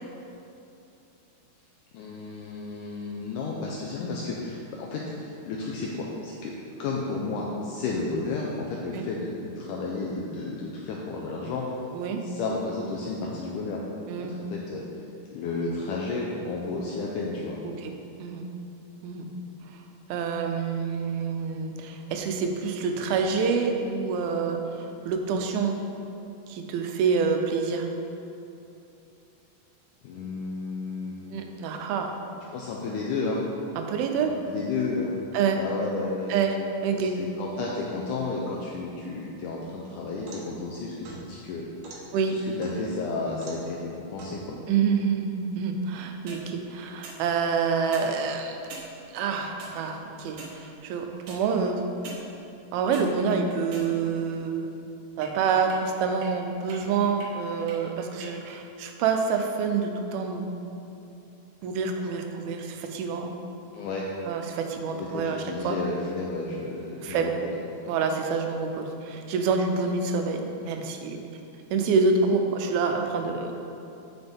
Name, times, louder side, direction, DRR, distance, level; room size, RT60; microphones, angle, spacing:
voice 1, 1.9-6.5 6.8-11.7 12.2-13.8 14.2-14.8 15.3-17.6 30.0-31.2 32.5-33.5 34.4-35.2 35.5-36.3 37.0-41.6 42.0-44.6 63.7-64.1 64.9-67.3, left 3 dB, 90° left, -2 dB, 1.8 m, -32 dB
voice 2, 11.9-12.2 14.1-14.3 17.6-18.5 19.0-19.3 20.1-25.8 26.5-27.9 31.3-32.1 33.8-34.3 35.3-35.6 36.3-36.6 36.8-37.2 42.1-42.3 44.7-48.6 49.1-51.8 52.7-54.7 55.2-60.5 61.6-63.4 64.3-65.8 67.0-67.3 67.9-71.2 71.7-73.6, right 5 dB, 85° right, 4 dB, 2.5 m, -27 dB
sound 1, 39.9-40.6 41.0-42.0 42.6-43.0 43.4-43.7 44.2-44.4 46.1-46.4 47.0-47.2 47.8-48.1 48.7-48.9 49.6-49.7 50.3-50.6 51.3-51.4 52.0-52.2 52.7-53.1 53.7-54.2 55.2-55.3 55.7-55.8 56.2-56.3 56.7-56.8 57.2-57.3 57.7-57.8 58.2-58.3, right 4 dB, 70° right, 1.7 m, -42 dB
8.0 x 5.9 x 3.5 m, 2.8 s
omnidirectional pair, 4.2 m